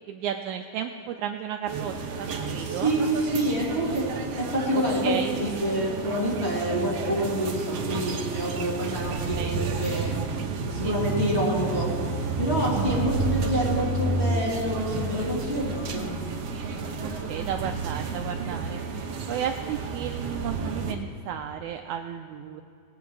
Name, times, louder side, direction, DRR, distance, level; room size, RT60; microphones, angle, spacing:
voice 1, 0.1-2.9 4.7-5.4 9.3-9.6 10.8-10.9 12.7-13.1 17.3-18.8 19.3-22.6, right 9 dB, 80° right, 5 dB, 1.8 m, -33 dB
sound 1, 1.7-20.9, right 4 dB, 60° right, 1.8 m, -31 dB
voice 2, 2.6-4.1 4.4-10.2 10.7-11.9 12.4-16.1, equal, 20° left, -6 dB, 2.1 m, -27 dB
19.0 x 8.6 x 4.8 m, 2.6 s
omnidirectional pair, 3.8 m